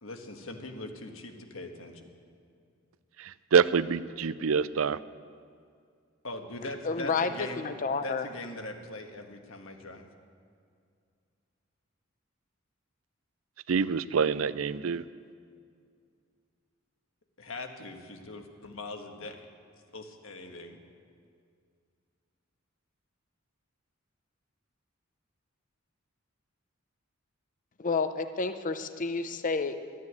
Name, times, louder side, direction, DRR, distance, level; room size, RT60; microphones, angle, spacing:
voice 1, 0.0-2.0 6.2-7.6 8.0-10.1 17.4-19.5 19.9-20.8, left 2 dB, 75° left, 4 dB, 1.5 m, -41 dB
voice 2, 3.2-5.0 13.7-15.0, right 6 dB, 80° right, 15 dB, 0.5 m, -26 dB
voice 3, 6.8-8.3 27.8-29.8, left 4 dB, 40° left, 10 dB, 0.7 m, -30 dB
13.0 x 9.5 x 9.6 m, 2.3 s
head